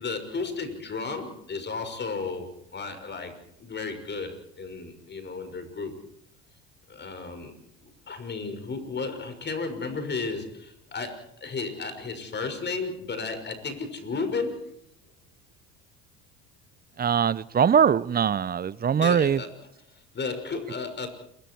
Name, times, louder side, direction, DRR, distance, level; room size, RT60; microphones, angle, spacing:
voice 1, 0.0-3.3 3.6-5.9 6.9-7.5 7.8-14.8 18.9-19.5 19.9-21.1, left 4 dB, 35° left, 7 dB, 6.2 m, -33 dB
voice 2, 17.0-19.4, right 7 dB, 30° right, 20 dB, 0.8 m, -22 dB
27.5 x 24.0 x 4.8 m, 0.72 s
supercardioid pair, 80°, 32 cm